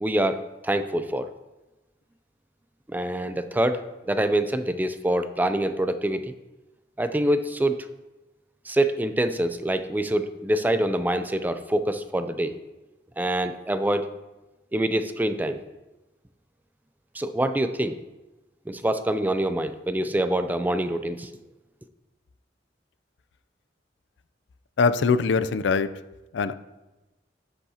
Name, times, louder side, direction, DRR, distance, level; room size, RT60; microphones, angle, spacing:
voice 1, 0.0-1.3 2.9-3.8 4.1-6.3 7.0-7.9 8.7-12.6 13.2-14.1 14.7-15.6 17.1-18.0 18.7-21.3, right 1 dB, 10° right, 10 dB, 0.4 m, -25 dB
voice 2, 24.8-25.9 26.3-26.5, left 4 dB, 75° left, 13 dB, 0.4 m, -22 dB
10.5 x 8.1 x 2.8 m, 1.1 s
head